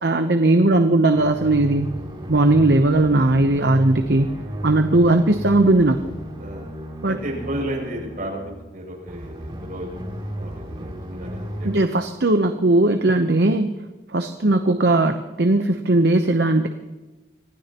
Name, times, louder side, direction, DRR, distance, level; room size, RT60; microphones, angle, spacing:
voice 1, 0.0-1.9 2.3-4.3 4.6-6.0 7.0-7.2 11.6-13.7 14.1-16.7, right 2 dB, 65° right, 7 dB, 0.9 m, -18 dB
sound 1, 1.1-11.7, right 1 dB, 25° right, 2.9 m, -34 dB
voice 2, 7.1-10.0 10.3-11.7, right 1 dB, 50° right, -2 dB, 6.7 m, -33 dB
25.5 x 15.5 x 3.0 m, 1.1 s
head